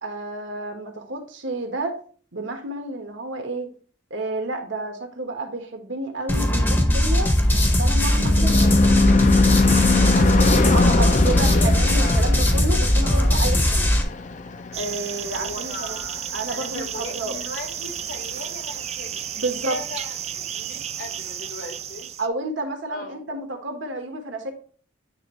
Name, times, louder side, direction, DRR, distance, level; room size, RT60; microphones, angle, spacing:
voice 1, 0.0-2.0 2.3-3.7 4.1-7.3 7.8-9.2 10.1-13.9 14.7-16.0 16.3-17.4 19.4-19.8 22.2-24.5, right 2 dB, 80° right, 5 dB, 1.4 m, -30 dB
sound 1, 6.3-14.0, left 1 dB, 10° left, 0.7 m, -19 dB
Car passing by / Truck / Engine, 7.1-15.8, left 3 dB, 40° left, 0.4 m, -22 dB
voice 2, 10.7-11.7 11.9-12.4 13.0-13.3 15.3-19.4 19.7-22.1 22.9-23.2, left 2 dB, 80° left, 2 dB, 2.1 m, -37 dB
sound 2, 14.7-22.3, right 9 dB, 35° right, 0.4 m, -33 dB
9.6 x 3.5 x 3.1 m, 0.43 s
head